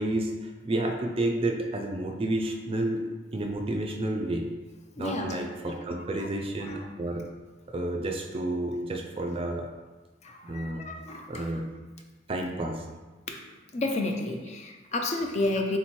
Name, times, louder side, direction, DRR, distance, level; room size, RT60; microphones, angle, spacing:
voice 1, 0.0-3.1 3.3-4.5 5.0-7.3 7.7-9.7 10.4-10.8 11.3-11.7 12.3-12.8, right 1 dB, 30° right, 3 dB, 0.4 m, -30 dB
voice 2, 5.0-5.3 6.6-6.8 10.2-11.5 13.3-13.4 13.7-15.8, left 2 dB, 35° left, 3 dB, 0.5 m, -31 dB
3.7 x 2.9 x 4.4 m, 1.2 s
head